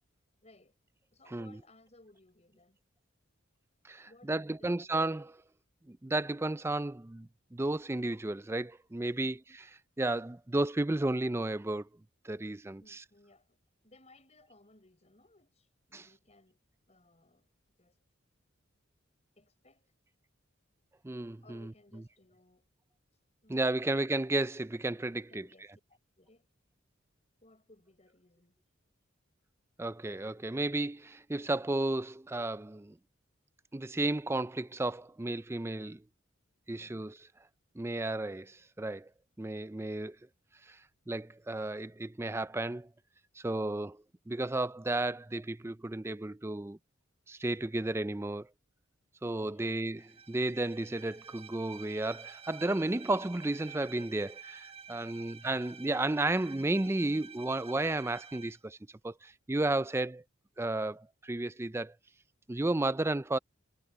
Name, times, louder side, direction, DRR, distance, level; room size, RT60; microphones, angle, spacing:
voice 1, 0.4-0.8 1.1-2.8 4.1-5.2 9.1-9.4 12.8-13.6 13.8-16.6 16.9-17.5 17.8-18.0 19.4-19.9 21.4-22.7 23.1-23.9 25.1-26.5 27.4-28.6 36.7-37.1 49.4-49.8 55.0-55.4, left 2 dB, 35° left, 5.7 m, -62 dB
voice 2, 3.8-5.3 5.9-9.7 10.0-11.9 12.2-13.0 15.9-16.1 21.0-21.7 23.5-25.5 29.8-32.9 33.7-36.0 36.7-37.1 37.8-39.1 39.4-40.2 40.7-40.8 41.1-42.9 43.4-46.8 47.3-48.5 49.2-50.0 50.3-58.8 59.0-60.2 60.6-61.9 62.5-63.4, right 2 dB, 15° right, 0.4 m, -33 dB
Bowed string instrument, 50.0-58.6, right 7 dB, 30° right, 3.2 m, -50 dB
head